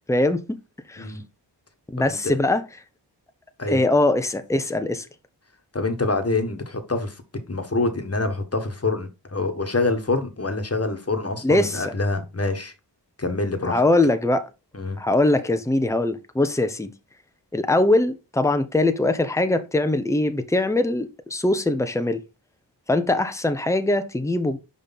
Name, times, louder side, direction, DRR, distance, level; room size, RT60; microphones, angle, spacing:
voice 1, 0.1-0.6 0.9-1.1 1.9-2.6 3.7-5.1 11.4-11.9 13.6-14.5 15.0-16.9 17.5-22.2 22.9-24.6, left 2 dB, 5° left, 0.9 m, -22 dB
voice 2, 2.0-2.3 3.6-3.8 5.7-7.2 7.5-12.7 13.2-13.8 14.7-15.0, left 3 dB, 35° left, 1.6 m, -26 dB
5.7 x 5.1 x 4.1 m
cardioid pair, 45°, 44 cm